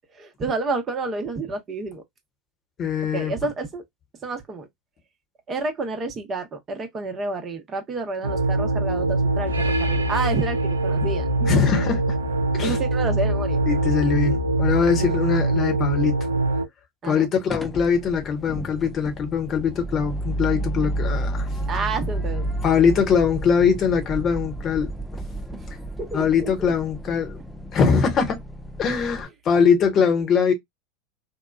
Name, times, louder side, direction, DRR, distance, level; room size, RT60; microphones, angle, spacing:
voice 1, 0.1-2.0 3.1-3.8 4.2-4.7 5.5-11.7 12.6-13.6 15.0-15.2 17.0-17.3 21.7-22.5 26.0-26.7, right 3 dB, 30° right, 0.8 m, -29 dB
voice 2, 2.8-3.3 11.4-12.2 12.5-12.8 13.7-16.1 17.0-21.5 22.6-24.9 26.1-27.4 27.7-28.4 28.8-30.5, left 6 dB, 35° left, 1.1 m, -22 dB
sound 1, 8.2-16.7, right 2 dB, 90° right, 0.5 m, -23 dB
sound 2, 17.5-29.2, right 1 dB, ahead, 0.5 m, -31 dB
2.8 x 2.2 x 2.3 m
hypercardioid pair, 85°, 0 cm